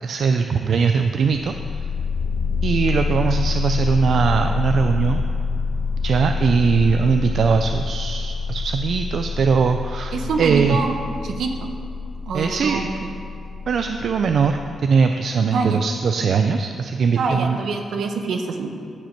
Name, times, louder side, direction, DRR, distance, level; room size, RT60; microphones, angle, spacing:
voice 1, 0.0-1.5 2.6-5.2 6.0-10.8 12.3-12.8 13.7-17.6, right 5 dB, 60° right, 6 dB, 0.4 m, -20 dB
sound 1, 1.3-14.7, left 4 dB, 80° left, 1.4 m, -26 dB
voice 2, 10.1-11.0 11.2-11.5 12.3-13.1 15.5-15.8 17.2-18.7, right 4 dB, 75° right, 4 dB, 1.0 m, -25 dB
12.0 x 5.1 x 5.8 m, 2.5 s
wide cardioid pair, 130°, 0 cm